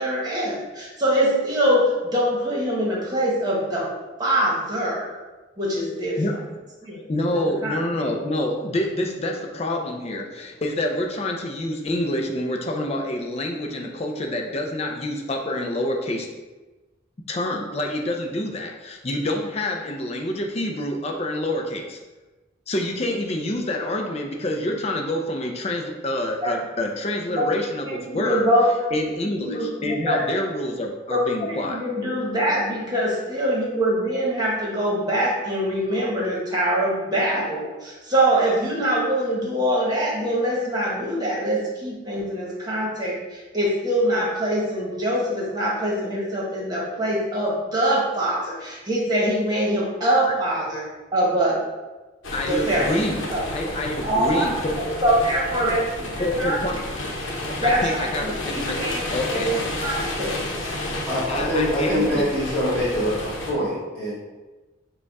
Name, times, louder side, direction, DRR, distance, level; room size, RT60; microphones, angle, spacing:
voice 1, 0.0-3.9 4.2-5.1 5.6-6.2 6.8-7.0 7.3-7.8 26.4-26.5 27.3-27.5 27.8-29.0 29.2-30.2 31.1-50.8 51.1-51.6 52.5-52.9 53.3-53.4 54.0-54.5 55.0-56.1 56.4-56.6 57.6-59.0 59.3-60.4, right 1 dB, 20° right, -5 dB, 1.1 m, -23 dB
voice 2, 7.1-16.3 17.3-22.0 22.7-28.4 28.9-31.8 52.3-53.2 53.5-54.7 56.2-56.8 57.5-59.5 61.3-62.2, left 1 dB, 30° left, 2 dB, 0.5 m, -27 dB
sound 1, 52.2-63.5, left 1 dB, 80° left, 0.8 m, -31 dB
voice 3, 61.0-64.1, equal, 5° left, -12 dB, 1.2 m, -24 dB
4.9 x 2.3 x 4.6 m, 1.2 s
head